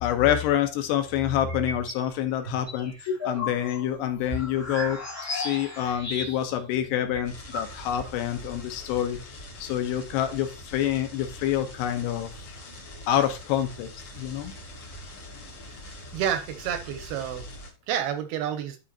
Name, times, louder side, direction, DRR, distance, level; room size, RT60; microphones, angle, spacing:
voice 1, 0.0-9.2 9.6-12.5 13.1-13.9 14.2-14.5, left 11 dB, 80° left, 7 dB, 2.9 m, -27 dB
sound 1, 1.5-2.1 2.4-6.6 6.9-7.0 7.1-8.1, left 2 dB, 30° left, 1.4 m, -34 dB
sound 2, 7.2-17.7, left 1 dB, 50° left, 1.7 m, -43 dB
voice 2, 15.7-17.4 17.9-18.8, right 9 dB, 85° right, 8 dB, 2.3 m, -30 dB
11.5 x 4.9 x 2.8 m, 0.29 s
omnidirectional pair, 5.1 m